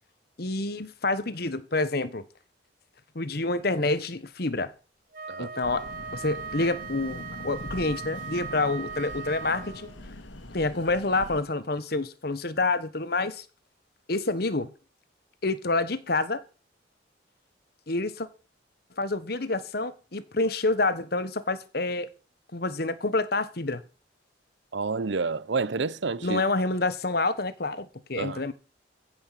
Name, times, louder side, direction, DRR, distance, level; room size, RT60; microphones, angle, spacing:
voice 1, 0.4-2.2 3.1-4.7 5.4-5.9 6.1-9.9 10.5-13.4 14.1-14.7 15.4-16.4 17.9-18.3 19.0-22.1 22.5-23.8 26.2-28.5, left 2 dB, 55° left, 1.2 m, -28 dB
Wind instrument woodwind instrument, 5.1-10.0, right 5 dB, 45° right, 1.0 m, -39 dB
sound 1, 5.6-11.4, left 1 dB, 80° left, 1.8 m, -42 dB
voice 2, 24.7-26.4 28.2-28.4, right 4 dB, 70° right, 0.6 m, -29 dB
15.5 x 6.2 x 7.5 m
head